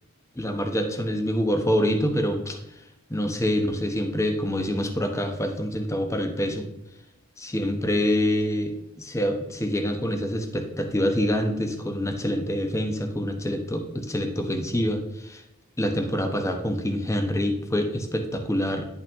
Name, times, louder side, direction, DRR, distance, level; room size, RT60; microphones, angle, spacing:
voice 1, 0.4-2.6 3.1-6.7 7.4-15.4 15.8-18.9, equal, 15° left, 5 dB, 1.0 m, -26 dB
10.5 x 5.6 x 3.6 m, 0.86 s
head